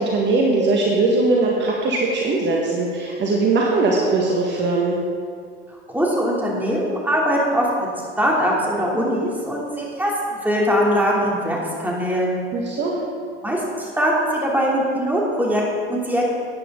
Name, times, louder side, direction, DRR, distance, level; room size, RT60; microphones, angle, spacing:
voice 1, 0.0-5.0 12.5-12.9, right 3 dB, 40° right, -2 dB, 1.8 m, -20 dB
voice 2, 5.9-7.9 8.2-12.4 13.4-16.3, equal, 5° right, -4 dB, 3.2 m, -21 dB
13.5 x 9.5 x 3.9 m, 2.1 s
hypercardioid pair, 85°, 29 cm